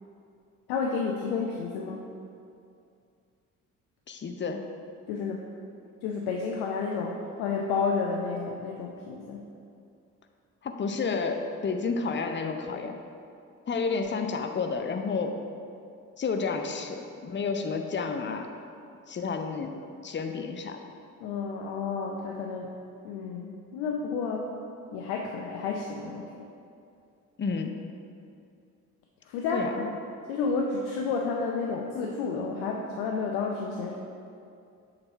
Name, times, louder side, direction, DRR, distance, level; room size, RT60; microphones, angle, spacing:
voice 1, 0.7-2.0 5.1-5.4 6.0-9.5 21.2-22.7 23.0-24.5 24.9-26.5 29.3-30.0 30.3-33.9, left 4 dB, 75° left, 0 dB, 0.6 m, -31 dB
voice 2, 4.1-4.6 10.6-13.0 13.7-15.4 16.2-18.5 19.1-19.7 20.0-20.8 27.4-27.7 29.5-29.9, left 4 dB, 30° left, 5 dB, 0.6 m, -30 dB
6.7 x 4.0 x 4.5 m, 2.5 s
hypercardioid pair, 45°, 41 cm